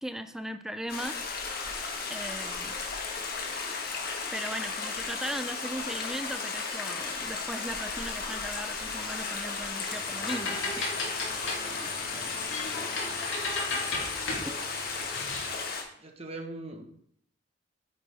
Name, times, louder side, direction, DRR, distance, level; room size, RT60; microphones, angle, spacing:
voice 1, 0.0-1.2 2.1-2.8 4.3-11.0, equal, 5° right, 9 dB, 0.4 m, -38 dB
Stream, 0.9-15.8, left 4 dB, 50° left, 1.5 m, -35 dB
sound 1, 9.9-15.6, left 2 dB, 70° left, 2.8 m, -36 dB
voice 2, 13.7-14.0 14.4-14.6 16.0-16.8, right 2 dB, 30° right, 4 dB, 1.2 m, -42 dB
8.9 x 8.5 x 3.5 m, 0.66 s
head